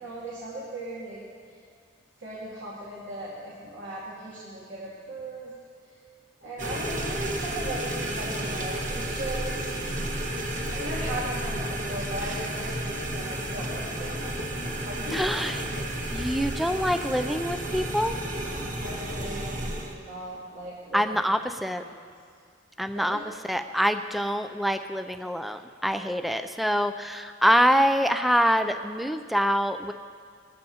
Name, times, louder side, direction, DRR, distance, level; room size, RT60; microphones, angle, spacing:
voice 1, 0.0-1.6 2.2-5.5 6.4-9.6 10.7-15.4 18.8-21.2 21.8-22.0 22.9-23.2, right 1 dB, 75° right, -7 dB, 2.6 m, -38 dB
sound 1, 6.6-19.9, right 1 dB, 40° right, 1.4 m, -32 dB
voice 2, 15.1-15.6 16.1-18.2 20.9-21.8 22.8-23.2 23.5-29.9, equal, ahead, 8 dB, 0.3 m, -25 dB
21.0 x 14.0 x 2.8 m, 2.2 s
head